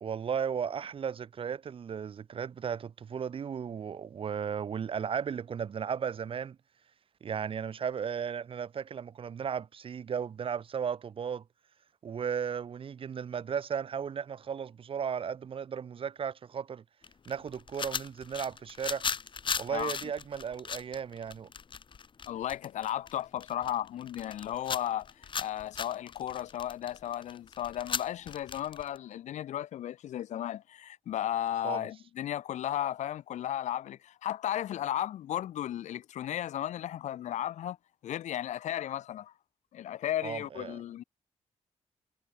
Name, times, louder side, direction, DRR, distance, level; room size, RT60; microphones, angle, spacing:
voice 1, 0.0-6.6 7.2-11.4 12.0-16.8 17.3-19.0 19.6-21.5 31.6-31.9 40.2-40.8, right 7 dB, 50° right, 0.5 m, -35 dB
sound 1, 17.0-29.0, left 6 dB, 45° left, 0.7 m, -38 dB
voice 2, 22.3-37.8 38.0-39.3 39.7-41.0, left 11 dB, 85° left, 0.5 m, -35 dB
cardioid pair, 85°, 12 cm